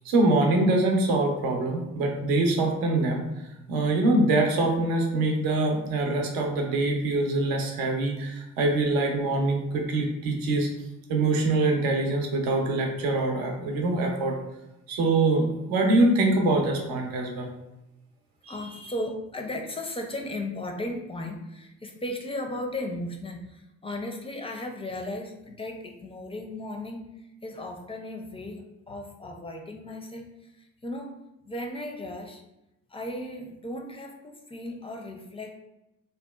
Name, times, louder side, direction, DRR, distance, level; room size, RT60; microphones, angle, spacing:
voice 1, 0.0-3.2 3.7-10.7 11.1-14.4 14.9-17.5 18.4-18.8, right 2 dB, 70° right, 1 dB, 0.6 m, -24 dB
voice 2, 18.5-27.0 27.4-30.3 30.6-31.2 31.5-32.4 32.9-35.6, left 1 dB, 15° left, 3 dB, 0.4 m, -36 dB
2.7 x 2.1 x 2.2 m, 0.93 s
hypercardioid pair, 45°, 37 cm